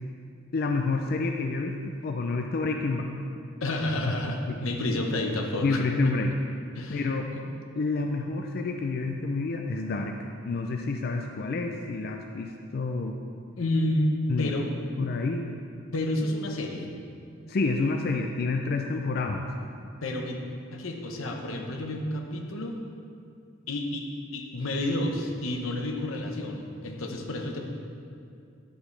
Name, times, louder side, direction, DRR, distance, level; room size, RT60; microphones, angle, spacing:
voice 1, 0.5-3.1 4.3-4.6 5.6-6.3 6.9-7.3 7.8-10.2 10.4-13.2 14.3-14.6 15.0-15.5 17.5-19.4, left 3 dB, 50° left, 3 dB, 0.4 m, -28 dB
voice 2, 3.6-5.8 6.7-7.1 13.6-14.7 15.9-16.9 20.0-20.4 20.7-22.8 23.7-24.1 24.3-27.7, left 1 dB, 85° left, 2 dB, 0.9 m, -30 dB
10.5 x 7.9 x 3.3 m, 2.4 s
head